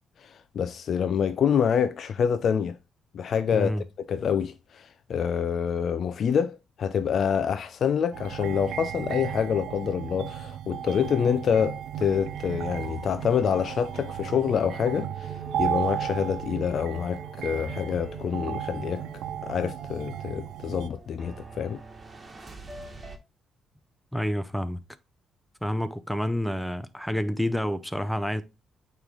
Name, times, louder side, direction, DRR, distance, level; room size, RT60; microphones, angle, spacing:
voice 1, 0.2-2.8 3.1-19.0 19.4-21.8, left 7 dB, 60° left, 0.5 m, -27 dB
voice 2, 3.5-3.8 24.1-24.8 25.6-28.4, equal, ahead, 0.6 m, -28 dB
sound 1, 8.1-20.9, right 11 dB, 85° right, 0.4 m, -35 dB
sound 2, 10.9-23.2, right 2 dB, 30° right, 1.4 m, -46 dB
8.7 x 3.2 x 3.8 m
cardioid pair, 90°, 0 cm